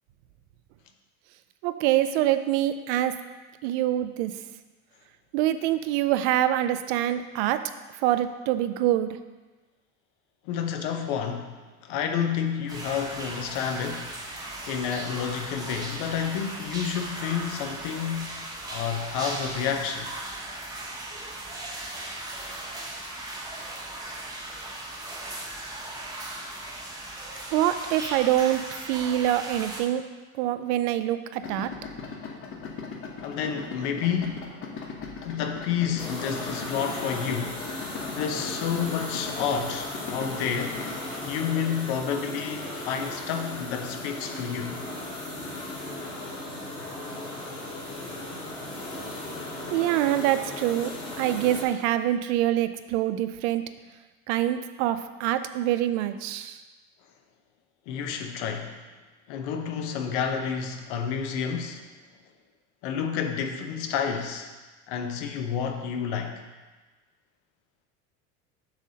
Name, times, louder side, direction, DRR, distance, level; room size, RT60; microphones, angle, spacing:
voice 1, 1.6-3.1 3.6-4.3 5.3-7.6 8.0-9.1 27.5-30.0 30.3-31.7 49.7-53.6 54.3-56.6, right 13 dB, 75° right, 11 dB, 0.5 m, -25 dB
voice 2, 10.4-18.3 18.7-20.1 33.2-34.6 35.2-37.6 38.1-40.9 41.3-44.8 57.9-58.8 59.3-61.9 62.8-64.5 64.9-66.4, left 7 dB, 80° left, 5 dB, 0.9 m, -30 dB
sound 1, 12.7-29.8, right 2 dB, 10° right, 0.9 m, -37 dB
Idling, 31.4-41.0, left 5 dB, 40° left, 0.9 m, -39 dB
sound 2, 36.0-51.7, left 2 dB, 15° left, 1.1 m, -36 dB
7.3 x 6.3 x 2.8 m, 1.3 s
cardioid pair, 145°, 33 cm